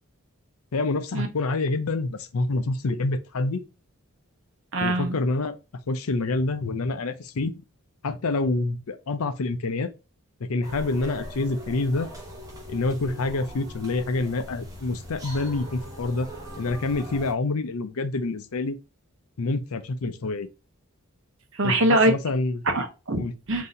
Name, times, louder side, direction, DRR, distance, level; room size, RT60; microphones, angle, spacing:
voice 1, 0.7-3.6 4.8-5.6 5.9-7.5 8.0-9.9 10.5-12.1 12.7-16.3 16.6-18.8 19.4-20.5 21.6-21.8 22.1-22.6 23.2-23.3, left 2 dB, 75° left, 0.6 m, -27 dB
voice 2, 4.7-5.2 21.5-22.1 22.6-23.7, right 1 dB, 60° right, 0.8 m, -23 dB
sound 1, 10.6-17.3, equal, 15° right, 1.0 m, -40 dB
4.0 x 2.8 x 3.9 m
head